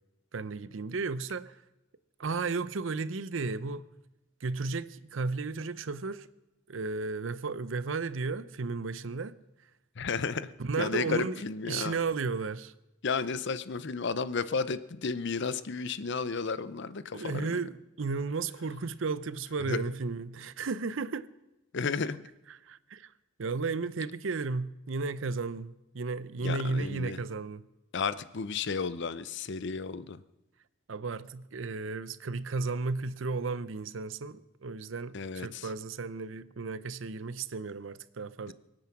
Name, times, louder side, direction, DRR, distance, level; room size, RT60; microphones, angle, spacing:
voice 1, 0.3-1.6 2.2-3.9 4.4-6.3 6.7-9.3 10.6-12.7 17.1-21.3 22.5-23.1 23.4-27.6 30.9-38.5, right 4 dB, 70° right, 0.7 m, -34 dB
voice 2, 10.0-10.5 10.8-11.9 13.0-17.7 19.7-19.8 21.7-22.2 26.4-27.2 27.9-30.2 35.1-35.7 38.5-38.6, left 5 dB, 60° left, 0.7 m, -33 dB
24.0 x 9.0 x 6.0 m
head